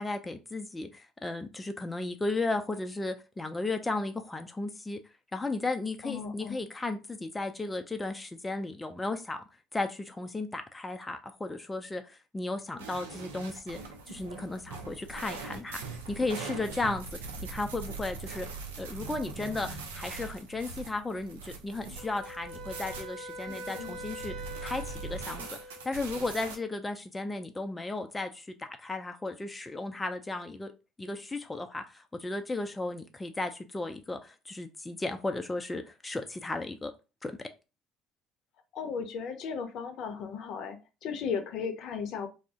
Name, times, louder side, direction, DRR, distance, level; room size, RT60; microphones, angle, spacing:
voice 1, 0.0-5.0 5.3-9.4 9.7-13.8 14.1-18.5 18.8-24.3 24.6-25.5 25.8-30.7 31.0-36.9 37.2-37.3, left 2 dB, 15° left, 6 dB, 0.4 m, -35 dB
voice 2, 6.0-6.6 23.5-24.0 38.7-42.3, left 6 dB, 60° left, 7 dB, 0.6 m, -36 dB
sound 1, 12.8-26.6, right 4 dB, 90° right, 0.5 m, -42 dB
Wind instrument woodwind instrument, 22.0-26.0, equal, 45° right, 0.9 m, -43 dB
2.4 x 2.0 x 3.5 m, 0.30 s
hypercardioid pair, 65°, 0 cm